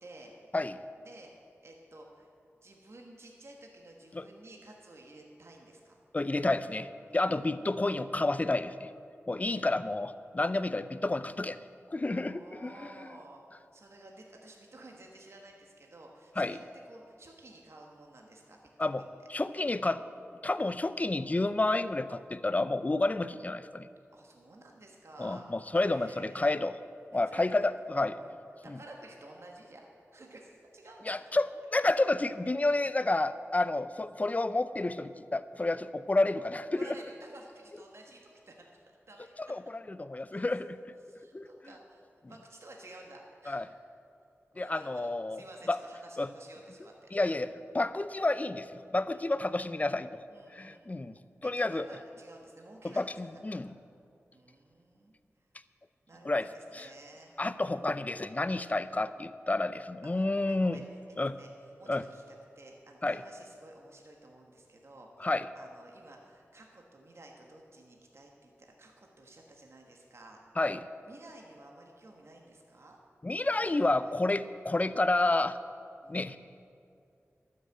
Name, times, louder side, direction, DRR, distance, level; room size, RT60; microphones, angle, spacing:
voice 1, 0.0-0.3 1.0-1.3 1.6-2.3 2.6-6.0 7.1-7.7 12.0-16.6 16.9-18.6 18.9-19.1 24.1-25.5 25.8-26.6 27.1-27.4 28.1-28.4 28.6-29.9 30.1-31.3 31.8-31.9 36.7-39.5 40.3-40.4 41.0-42.0 42.3-43.6 44.5-47.4 49.1-49.3 50.3-50.9 51.4-53.9 54.3-55.5 56.1-57.3 60.2-60.8 61.2-61.5 61.8-70.4 71.0-73.0 73.6-74.2 76.0-76.3, right 2 dB, 60° right, 0 dB, 1.4 m, -53 dB
voice 2, 6.1-8.9 9.3-11.6 11.9-13.1 16.4-16.6 18.8-19.0 19.3-20.0 20.4-23.9 25.2-26.8 27.1-28.2 28.7-28.8 31.1-36.9 39.5-40.8 41.3-41.5 43.5-43.6 44.6-45.4 45.7-45.8 46.2-46.3 47.1-47.5 47.7-50.1 50.5-51.1 51.4-51.9 53.0-53.7 56.2-56.5 56.7-56.9 57.4-60.8 61.2-61.3 61.9-62.0 63.0-63.2 65.2-65.5 70.6-70.8 73.2-75.6 76.1-76.4, left 2 dB, 30° left, 13 dB, 0.5 m, -30 dB
12.5 x 6.6 x 8.0 m, 2.5 s
wide cardioid pair, 55°, 5 cm